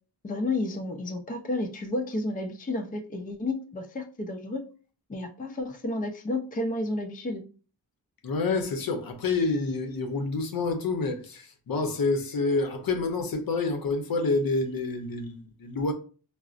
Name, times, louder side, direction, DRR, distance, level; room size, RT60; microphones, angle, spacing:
voice 1, 0.2-4.6 5.1-7.4, left 2 dB, 20° left, 0.5 m, -31 dB
voice 2, 8.2-15.9, left 3 dB, 60° left, 0.7 m, -28 dB
3.8 x 2.0 x 2.4 m
cardioid pair, 65°, 40 cm